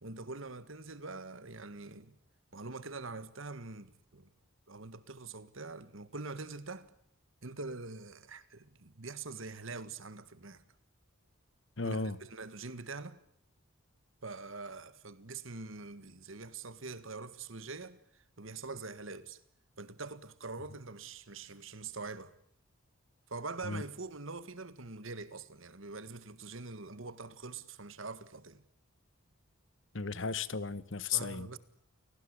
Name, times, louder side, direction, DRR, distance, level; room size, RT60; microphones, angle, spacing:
voice 1, 0.0-2.2 2.5-4.3 4.7-6.9 7.4-10.6 11.8-13.2 14.2-19.4 19.8-22.3 23.3-28.6 31.1-31.6, right 3 dB, 70° right, 1.7 m, -44 dB
voice 2, 11.8-12.2 23.6-23.8 29.9-31.5, left 5 dB, 60° left, 1.2 m, -34 dB
28.5 x 18.5 x 9.9 m
head